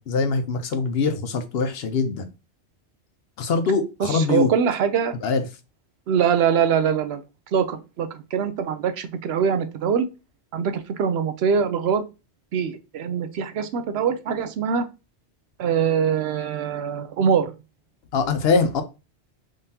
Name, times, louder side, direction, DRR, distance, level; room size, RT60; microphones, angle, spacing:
voice 1, 0.0-2.3 3.4-4.5 5.2-5.4 18.1-18.8, left 4 dB, 65° left, 0.8 m, -23 dB
voice 2, 4.0-5.1 6.1-7.2 7.5-10.1 10.5-12.0 12.5-14.8 15.6-17.5, right 7 dB, 70° right, 0.8 m, -23 dB
3.7 x 3.3 x 2.7 m
omnidirectional pair, 1.2 m